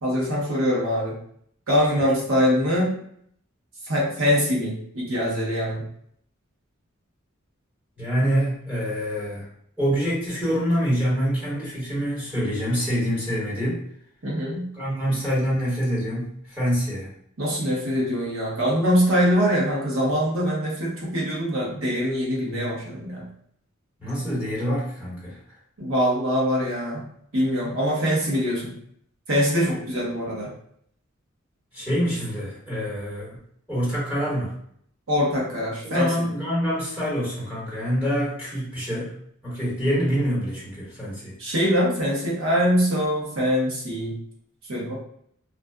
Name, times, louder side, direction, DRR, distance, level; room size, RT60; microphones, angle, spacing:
voice 1, 0.0-1.2 1.7-2.9 3.8-5.8 14.2-14.7 17.4-23.3 25.8-27.0 27.3-28.7 29.3-30.5 35.1-36.3 41.4-44.2 44.7-45.0, equal, 80° right, -4 dB, 0.9 m, -23 dB
voice 2, 8.0-9.5 9.8-13.8 14.7-17.1 24.0-25.4 31.7-33.4 33.7-34.5 35.8-39.1 39.4-41.3, equal, 10° right, -8 dB, 1.2 m, -26 dB
2.4 x 2.3 x 2.3 m, 0.66 s
head